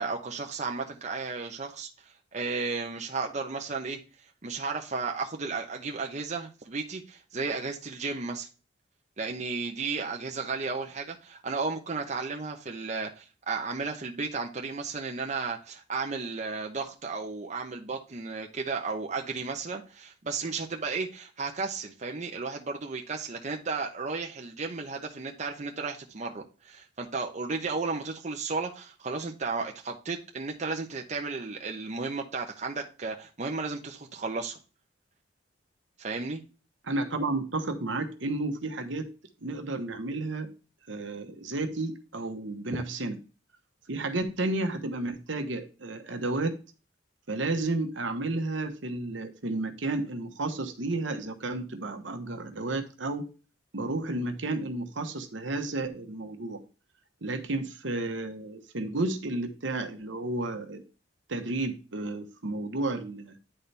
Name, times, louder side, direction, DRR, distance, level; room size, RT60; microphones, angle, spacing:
voice 1, 0.0-1.9 2.3-4.0 4.4-8.5 9.2-34.6 36.0-36.4, right 4 dB, 40° right, 2 dB, 0.8 m, -34 dB
voice 2, 36.8-39.1 39.4-40.5 40.9-43.2 43.9-46.6 47.3-53.2 53.7-56.6 57.2-60.8 61.3-63.4, right 2 dB, 70° right, 7 dB, 1.1 m, -32 dB
10.0 x 4.2 x 3.3 m, 0.34 s
head